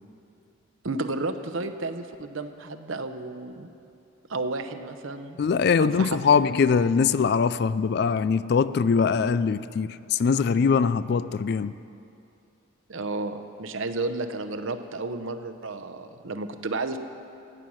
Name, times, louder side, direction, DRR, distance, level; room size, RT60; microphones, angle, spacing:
voice 1, 0.8-3.7 4.3-5.4 5.8-6.4 12.9-17.0, right 3 dB, 70° right, 0.8 m, -32 dB
voice 2, 5.4-11.8, left 5 dB, 50° left, 0.3 m, -22 dB
16.5 x 8.8 x 6.3 m
head